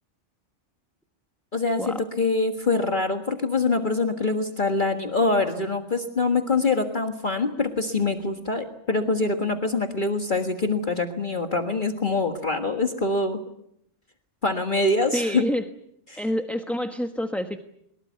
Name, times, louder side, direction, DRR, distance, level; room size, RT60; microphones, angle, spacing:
voice 1, 1.5-13.4 14.4-15.4 16.1-16.2, left 3 dB, 40° left, 5 dB, 1.8 m, -24 dB
voice 2, 15.1-15.6 16.2-17.6, equal, ahead, 7 dB, 1.1 m, -27 dB
23.0 x 21.5 x 9.3 m, 0.74 s
omnidirectional pair, 1.3 m